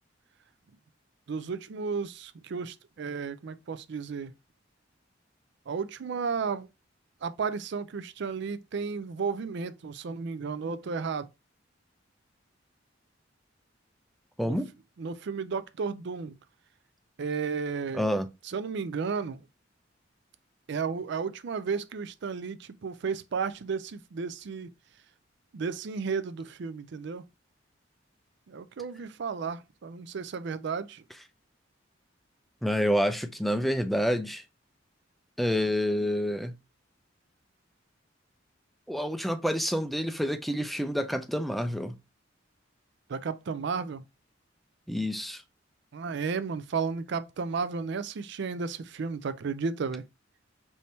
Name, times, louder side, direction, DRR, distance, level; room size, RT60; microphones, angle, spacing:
voice 1, 1.3-4.3 5.7-6.7 7.2-11.3 14.4-14.6 15.0-16.4 17.2-18.1 18.4-19.4 20.7-24.7 25.5-27.2 28.5-31.0 43.1-44.0 45.9-50.0, right 5 dB, 65° right, 0.4 m, -33 dB
voice 2, 14.4-14.7 17.9-18.3 32.6-34.4 35.4-36.5 38.9-41.9 44.9-45.4, equal, ahead, 0.4 m, -28 dB
3.4 x 2.7 x 4.2 m
head